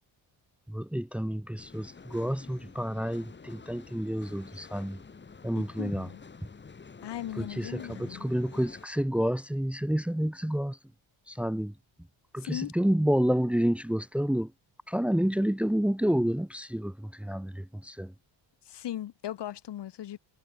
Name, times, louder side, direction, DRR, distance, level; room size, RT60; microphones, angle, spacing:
voice 1, 0.7-5.0 5.4-6.1 7.3-10.8 11.3-11.7 12.3-14.5 14.9-18.1, equal, 5° right, 1.3 m, -29 dB
sound 1, 1.6-8.9, left 5 dB, 25° left, 3.1 m, -49 dB
voice 2, 5.5-6.2 7.0-8.2 12.4-12.7 18.7-20.2, left 12 dB, 60° left, 2.4 m, -38 dB
cardioid pair, 165°, 46 cm